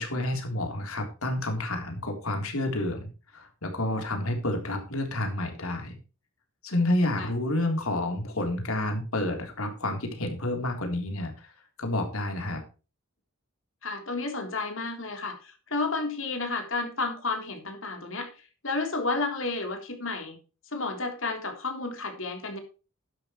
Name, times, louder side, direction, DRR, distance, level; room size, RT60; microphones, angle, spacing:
voice 1, 0.0-6.0 6.6-11.5 11.8-12.6, left 1 dB, 85° left, 4 dB, 3.5 m, -29 dB
voice 2, 13.8-18.3 18.6-20.4 20.7-22.6, left 3 dB, 65° left, 4 dB, 3.5 m, -31 dB
12.0 x 10.5 x 3.1 m, 0.33 s
head